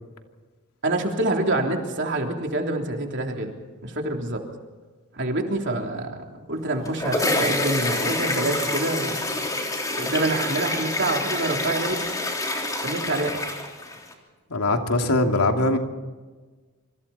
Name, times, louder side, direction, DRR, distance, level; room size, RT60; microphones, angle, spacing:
voice 1, 0.8-3.5 3.8-4.4 5.1-9.4 10.0-12.0 12.8-13.4, right 2 dB, 55° right, 2 dB, 3.5 m, -26 dB
sound 1, 6.6-14.1, left 2 dB, 15° left, 3.5 m, -27 dB
voice 2, 14.5-15.8, left 2 dB, 85° left, 3 dB, 2.8 m, -21 dB
28.0 x 26.0 x 4.4 m, 1.3 s
head